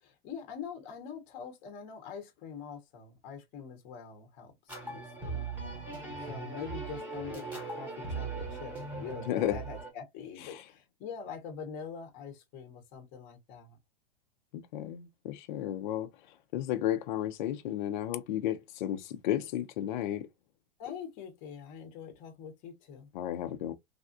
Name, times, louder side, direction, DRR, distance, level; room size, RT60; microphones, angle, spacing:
voice 1, 0.0-5.5 6.3-13.8 20.8-23.1, left 6 dB, 30° left, 0.8 m, -44 dB
sound 1, 4.7-9.9, right 4 dB, 5° right, 0.9 m, -39 dB
voice 2, 9.3-9.6 10.5-10.6 14.5-16.1 16.5-20.3 23.1-23.7, left 12 dB, 55° left, 0.5 m, -33 dB
3.4 x 2.4 x 2.5 m
supercardioid pair, 155°, 29 cm